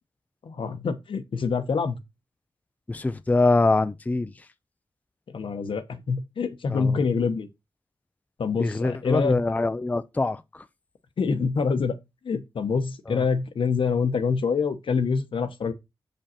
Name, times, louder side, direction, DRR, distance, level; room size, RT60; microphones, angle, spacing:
voice 1, 0.4-2.0 5.3-7.5 8.4-9.4 11.2-11.9 12.2-15.7, left 5 dB, 80° left, 1.0 m, -26 dB
voice 2, 2.9-4.3 6.7-7.0 8.6-10.6 13.1-13.2, left 2 dB, 20° left, 0.4 m, -24 dB
7.3 x 5.3 x 4.3 m
wide cardioid pair, 130°, 9 cm